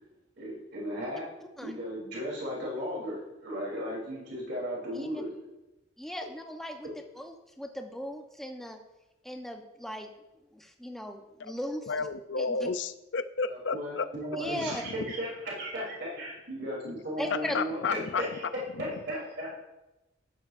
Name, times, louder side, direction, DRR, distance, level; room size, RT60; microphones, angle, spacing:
voice 1, 0.4-1.3 1.6-5.3 13.5-17.8 18.2-18.4 18.8-19.7, equal, 60° right, -4 dB, 3.4 m, -36 dB
voice 2, 6.0-6.9 7.1-8.8 9.2-10.1 10.5-11.9 12.4-12.7 14.3-14.8 17.2-17.6, equal, ahead, 3 dB, 0.9 m, -38 dB
voice 3, 11.9-14.1 17.3-18.2 18.8-18.9, left 4 dB, 70° left, 12 dB, 0.5 m, -31 dB
14.0 x 10.0 x 2.6 m, 0.99 s
head